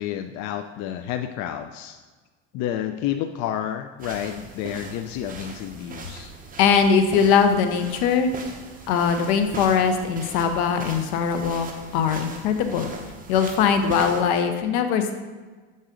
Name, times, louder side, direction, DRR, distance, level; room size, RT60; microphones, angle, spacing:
voice 1, 0.0-2.0 2.5-6.3, left 11 dB, 55° left, 7 dB, 0.4 m, -30 dB
sound 1, 4.0-14.2, right 3 dB, 25° right, 0.9 m, -40 dB
voice 2, 6.6-8.3 8.9-11.7 11.9-12.9 13.3-15.1, left 6 dB, 75° left, 7 dB, 0.8 m, -21 dB
7.6 x 4.0 x 3.8 m, 1.4 s
supercardioid pair, 105°, 33 cm